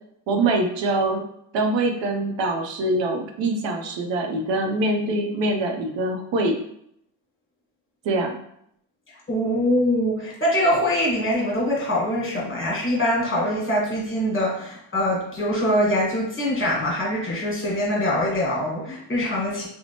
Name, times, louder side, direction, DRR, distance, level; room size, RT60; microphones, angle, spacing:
voice 1, 0.3-1.2 1.5-6.6 8.0-8.4, right 2 dB, 75° right, 3 dB, 0.6 m, -24 dB
voice 2, 9.1-19.7, equal, 30° left, -4 dB, 1.2 m, -23 dB
2.8 x 2.1 x 2.8 m, 0.72 s
cardioid pair, 80°, 44 cm